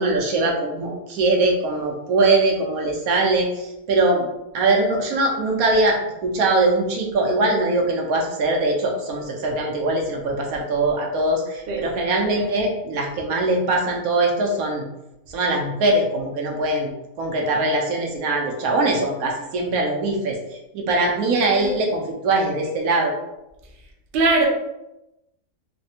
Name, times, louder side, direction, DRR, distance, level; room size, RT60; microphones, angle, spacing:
voice 1, 0.0-4.3 4.5-14.8 15.3-16.9 17.2-20.4 20.7-23.1, right 2 dB, 85° right, 0 dB, 1.1 m, -21 dB
voice 2, 24.1-24.5, right 3 dB, 55° right, 0 dB, 0.6 m, -20 dB
3.2 x 2.1 x 2.7 m, 0.91 s
omnidirectional pair, 1.5 m